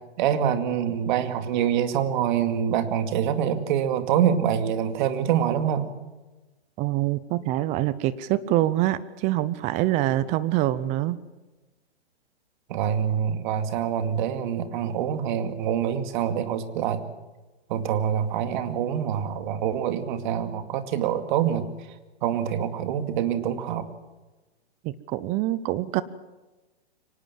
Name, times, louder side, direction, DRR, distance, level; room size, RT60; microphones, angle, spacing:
voice 1, 0.2-5.9 12.7-17.0 17.7-21.7 22.2-23.9, right 9 dB, 45° right, 9 dB, 2.3 m, -25 dB
voice 2, 6.8-11.2 24.8-26.0, right 14 dB, 20° right, 18 dB, 0.7 m, -25 dB
24.5 x 19.0 x 7.5 m, 1.1 s
hypercardioid pair, 140°, 34 cm